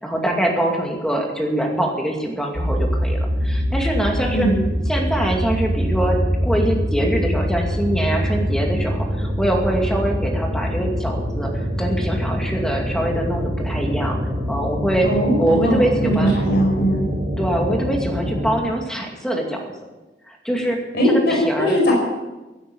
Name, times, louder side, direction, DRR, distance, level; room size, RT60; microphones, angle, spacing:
voice 1, 0.0-4.5 4.9-14.2 14.5-15.1 15.4-16.4 17.4-19.7 20.3-21.8, right 1 dB, 5° left, 1 dB, 2.3 m, -23 dB
sound 1, 2.5-18.6, equal, 40° right, 3.4 m, -24 dB
voice 2, 4.3-4.6 15.0-17.0 20.9-21.9, equal, 65° left, -2 dB, 5.2 m, -19 dB
16.5 x 9.3 x 8.6 m, 1.1 s
head